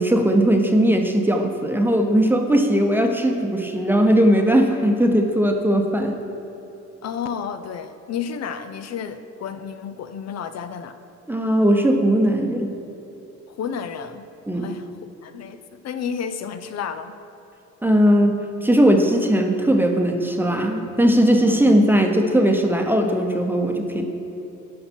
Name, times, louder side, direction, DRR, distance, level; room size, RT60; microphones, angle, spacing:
voice 1, 0.0-6.1 11.3-12.7 14.5-14.7 17.8-24.1, equal, 5° right, 3 dB, 0.9 m, -18 dB
voice 2, 7.0-10.9 13.5-14.3 14.5-14.9 15.2-17.2 21.5-21.6, left 7 dB, 60° left, 10 dB, 0.6 m, -31 dB
11.0 x 5.8 x 4.5 m, 2.9 s
cardioid pair, 90°, 30 cm